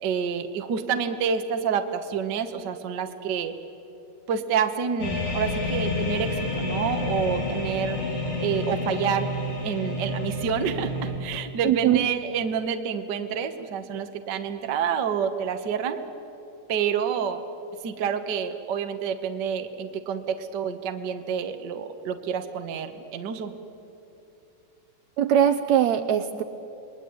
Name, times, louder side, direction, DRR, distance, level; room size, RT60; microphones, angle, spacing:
voice 1, 0.0-3.5 4.3-8.0 8.4-9.3 9.6-16.0 16.7-17.4 17.8-23.5, right 7 dB, 50° right, 7 dB, 1.3 m, -28 dB
sound 1, 5.0-11.1, left 2 dB, 85° left, 7.8 m, -29 dB
voice 2, 11.6-12.1 25.2-26.4, right 10 dB, 70° right, 9 dB, 1.9 m, -21 dB
28.0 x 20.5 x 9.7 m, 2.8 s
omnidirectional pair, 3.7 m